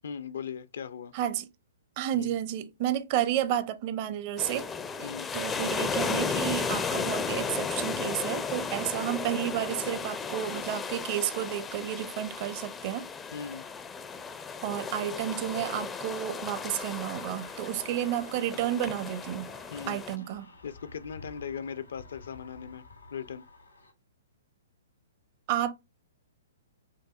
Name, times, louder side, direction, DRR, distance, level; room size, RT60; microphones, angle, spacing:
voice 1, 0.0-1.1 2.1-2.3 5.0-5.3 13.3-13.6 19.7-20.0 20.6-22.8 23.1-23.5, left 7 dB, 65° left, 0.5 m, -38 dB
voice 2, 1.1-1.5 2.0-4.6 5.0-5.1 5.3-13.1 14.6-19.5 19.9-20.5 25.5-25.7, right 11 dB, 40° right, 0.6 m, -31 dB
sound 1, 4.4-20.2, left 5 dB, 15° left, 0.4 m, -35 dB
sound 2, 16.7-23.9, left 2 dB, 85° left, 1.9 m, -51 dB
5.8 x 2.6 x 2.4 m
figure-of-eight pair, 120°, 0 cm